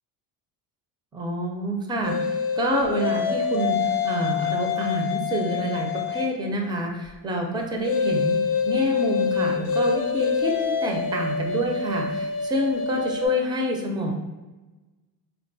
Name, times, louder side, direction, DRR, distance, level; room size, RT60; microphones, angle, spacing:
voice 1, 1.1-8.4 8.7-14.1, equal, 10° right, 1 dB, 0.3 m, -27 dB
sound 1, 2.0-6.4 7.8-13.3, left 6 dB, 60° left, 0.6 m, -26 dB
3.5 x 2.2 x 2.6 m, 1.1 s
cardioid pair, 110°, 43 cm